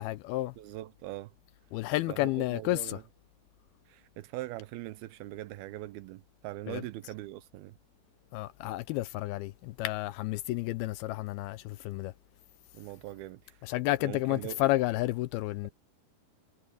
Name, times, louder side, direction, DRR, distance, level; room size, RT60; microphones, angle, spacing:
voice 1, 0.0-0.5 1.7-3.0 6.7-6.8 8.3-12.1 13.6-15.7, left 18 dB, 80° left, 2.3 m, -31 dB
voice 2, 0.6-1.3 2.1-3.0 3.9-7.8 12.7-13.6 14.0-14.6, right 16 dB, 80° right, 2.4 m, -41 dB
omnidirectional pair, 4.7 m